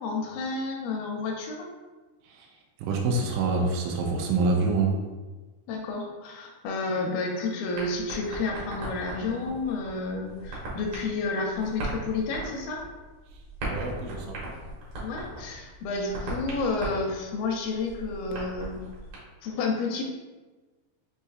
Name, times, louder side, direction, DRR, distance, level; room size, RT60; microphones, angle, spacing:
voice 1, 0.0-1.7 5.7-12.8 15.0-18.8 19.4-20.0, left 3 dB, 80° left, 1 dB, 2.2 m, -30 dB
voice 2, 2.2-5.0 13.3-14.4, right 3 dB, 90° right, 0 dB, 1.9 m, -27 dB
sound 1, 7.7-19.2, right 2 dB, 65° right, 1.7 m, -38 dB
6.2 x 2.7 x 2.4 m, 1.2 s
omnidirectional pair, 4.4 m